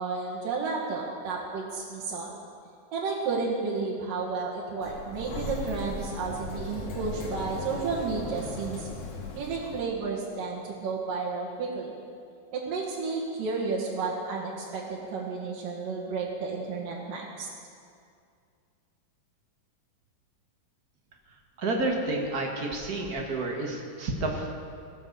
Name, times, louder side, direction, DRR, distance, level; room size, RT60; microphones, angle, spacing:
voice 1, 0.0-2.3 2.9-8.9 9.4-11.9 12.5-17.5, right 4 dB, 90° right, -6 dB, 3.5 m, -32 dB
Sliding door, 4.8-9.8, left 3 dB, 70° left, 3.0 m, -37 dB
voice 2, 21.6-24.5, right 2 dB, 40° right, 0 dB, 1.4 m, -30 dB
19.5 x 8.1 x 6.8 m, 2.3 s
omnidirectional pair, 3.7 m